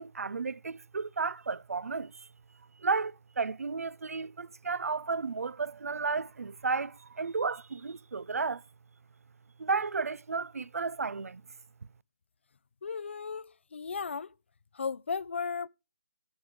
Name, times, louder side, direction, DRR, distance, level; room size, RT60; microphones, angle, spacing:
voice 1, 0.0-2.3 2.8-8.6 9.6-11.4, right 4 dB, 70° right, 0.5 m, -33 dB
voice 2, 12.8-14.3 14.7-15.7, left 5 dB, 50° left, 0.5 m, -35 dB
13.5 x 7.3 x 4.9 m
figure-of-eight pair, 165°, 8 cm